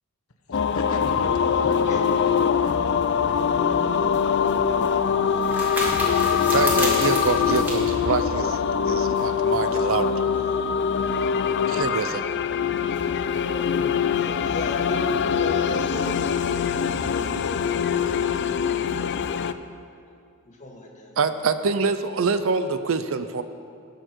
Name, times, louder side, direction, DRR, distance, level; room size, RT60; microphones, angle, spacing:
voice 1, 0.5-5.2 6.8-7.7 12.4-13.9, left 2 dB, 80° left, 4 dB, 1.1 m, -37 dB
sound 1, 0.5-19.5, left 7 dB, 55° left, 0.4 m, -23 dB
sound 2, 3.9-9.1, equal, 10° right, 2.2 m, -33 dB
voice 2, 6.5-8.6 8.8-10.1 11.2-11.3 11.7-12.3 21.2-23.4, right 4 dB, 70° right, 11 dB, 0.6 m, -25 dB
voice 3, 14.1-19.6 20.4-21.2, left 1 dB, 35° left, 0 dB, 1.8 m, -37 dB
19.0 x 6.7 x 4.6 m, 2.4 s
head